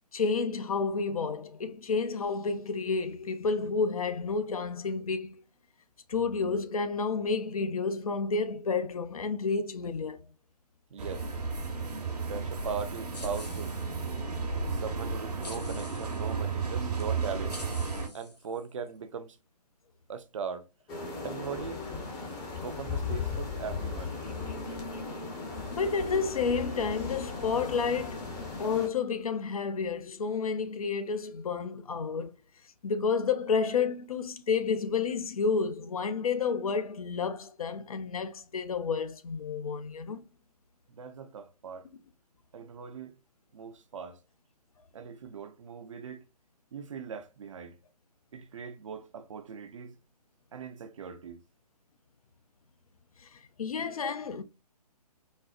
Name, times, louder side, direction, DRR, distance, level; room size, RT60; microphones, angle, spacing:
voice 1, 0.1-5.4 6.1-10.2 21.2-21.3 25.7-28.2 28.6-32.3 32.8-40.2 53.2-54.4, left 5 dB, 60° left, 0.5 m, -30 dB
voice 2, 10.9-11.3 12.2-13.8 14.7-17.6 18.1-19.4 20.1-20.7 21.2-22.3 22.6-24.1 25.0-25.1 40.9-41.9 42.5-43.2 43.5-44.2 44.9-46.2 46.7-47.8 48.3-50.0 50.5-51.4, right 6 dB, 50° right, 0.5 m, -40 dB
sound 1, 11.0-18.1, right 4 dB, 75° right, 1.0 m, -33 dB
sound 2, 13.1-14.2 15.4-16.4 17.0-17.1 17.5-18.9, left 2 dB, 85° left, 0.9 m, -48 dB
sound 3, 20.9-28.9, left 4 dB, 15° left, 0.7 m, -36 dB
4.1 x 2.0 x 2.3 m
figure-of-eight pair, 135°, 20 cm